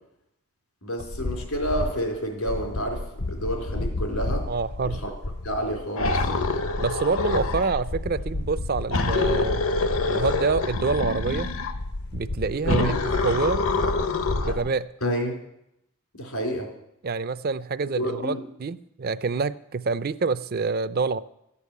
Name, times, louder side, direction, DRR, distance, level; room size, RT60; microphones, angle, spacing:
voice 1, 0.8-4.5 4.8-5.1 5.4-6.3 12.6-13.0 15.0-15.4 16.1-16.7 18.0-18.4, equal, 85° left, 0 dB, 3.9 m, -29 dB
sound 1, 1.0-2.2 2.5-14.7, left 2 dB, 50° left, 0.6 m, -32 dB
voice 2, 4.5-5.0 6.8-9.7 10.0-11.5 12.1-12.8 13.2-13.7 14.3-14.9 17.0-21.2, right 4 dB, 45° right, 15 dB, 0.5 m, -27 dB
sound 2, 6.0-7.8 8.9-11.8 12.7-14.6, left 3 dB, 70° left, 1.0 m, -26 dB
12.5 x 8.4 x 8.4 m, 0.81 s
head